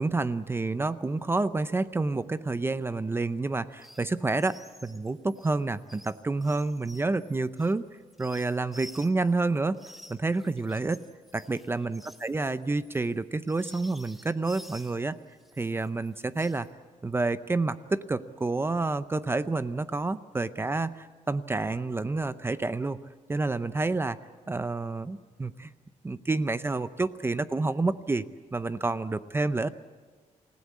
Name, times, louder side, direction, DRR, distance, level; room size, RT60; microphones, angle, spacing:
voice 1, 0.0-7.9 8.2-9.8 10.1-11.0 11.3-15.2 15.6-16.7 17.0-23.0 23.3-24.2 24.5-25.7 26.0-28.3 28.5-29.7, right 3 dB, 20° right, 13 dB, 0.6 m, -29 dB
sound 1, 3.7-4.1 4.4-9.3 9.7-15.0 15.4-16.7, equal, ahead, 1.5 m, -51 dB
28.0 x 16.0 x 8.4 m, 1.4 s
cardioid pair, 125°, 13 cm